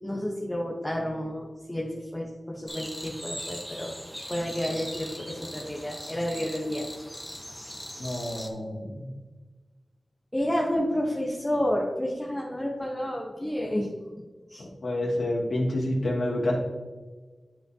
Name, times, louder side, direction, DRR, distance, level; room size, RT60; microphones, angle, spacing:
voice 1, 0.0-3.9 4.3-6.8 10.3-13.9 14.5-14.6, equal, 15° left, -2 dB, 1.1 m, -30 dB
sound 1, 2.7-8.5, equal, 5° right, 1.2 m, -40 dB
voice 2, 8.0-9.1 14.6-16.5, left 1 dB, 70° left, -4 dB, 2.3 m, -28 dB
11.0 x 5.0 x 2.9 m, 1.3 s
wide cardioid pair, 105°, 0 cm